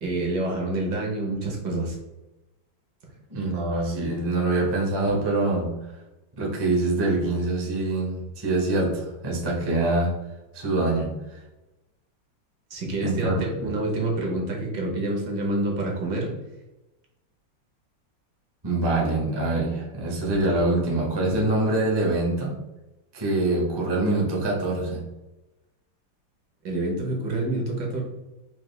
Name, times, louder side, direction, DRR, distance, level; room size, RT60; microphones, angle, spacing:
voice 1, 0.0-1.9 5.0-5.1 12.7-16.3 21.2-21.4 26.6-28.0, right 2 dB, 65° right, -1 dB, 1.6 m, -27 dB
voice 2, 3.3-5.8 6.4-10.2 10.5-11.4 13.0-13.7 18.6-22.6 23.1-25.0, right 2 dB, 25° right, -3 dB, 0.6 m, -25 dB
4.9 x 2.5 x 3.2 m, 1.0 s
omnidirectional pair, 2.1 m